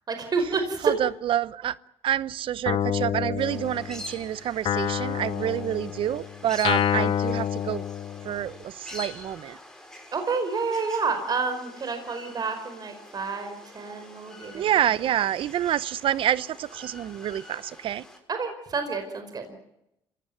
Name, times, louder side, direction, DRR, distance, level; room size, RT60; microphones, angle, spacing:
voice 1, 0.1-0.9 5.4-5.5 10.1-14.6 18.3-19.4, right 4 dB, 40° right, 5.1 m, -29 dB
voice 2, 0.8-1.8 2.0-7.8 8.2-9.6 14.5-18.0, right 11 dB, 60° right, 0.8 m, -27 dB
Guitar, 2.7-4.2 4.7-8.5, left 10 dB, 60° left, 0.9 m, -28 dB
sound 1, 3.4-18.2, left 1 dB, 5° left, 6.1 m, -45 dB
26.5 x 17.0 x 9.3 m
supercardioid pair, 75°, 10 cm